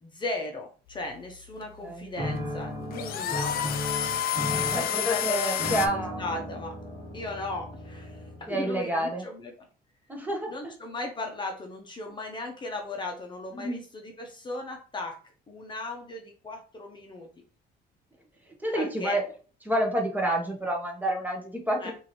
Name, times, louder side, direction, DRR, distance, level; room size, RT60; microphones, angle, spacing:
voice 1, 0.0-3.6 4.6-6.8 7.1-9.7 10.5-15.2 15.5-17.3 18.7-19.2 21.8-21.9, left 2 dB, 25° left, 2 dB, 0.8 m, -37 dB
sound 1, 0.9-5.9, left 10 dB, 60° left, 0.5 m, -30 dB
sound 2, 2.2-8.6, equal, 25° right, 1.9 m, -36 dB
voice 2, 4.5-6.3 8.5-9.2 10.1-10.7 13.5-13.8 18.6-19.2 19.6-21.9, right 1 dB, 10° right, 0 dB, 1.0 m, -29 dB
4.7 x 2.7 x 3.0 m, 0.39 s
cardioid pair, 110°, 17 cm